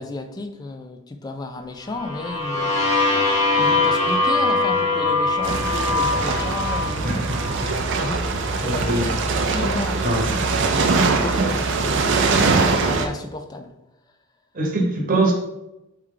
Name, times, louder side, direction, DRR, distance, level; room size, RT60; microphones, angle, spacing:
voice 1, 0.0-2.9 3.6-7.2 8.0-13.7, left 2 dB, 20° left, 0.3 m, -33 dB
sound 1, 1.9-7.8, left 3 dB, 85° left, 1.3 m, -22 dB
sound 2, 5.4-13.1, right 3 dB, 55° right, 0.5 m, -22 dB
voice 2, 7.0-7.8 8.6-9.1 10.0-10.3 14.5-15.3, right 2 dB, 40° right, 1.0 m, -23 dB
4.5 x 3.2 x 3.7 m
head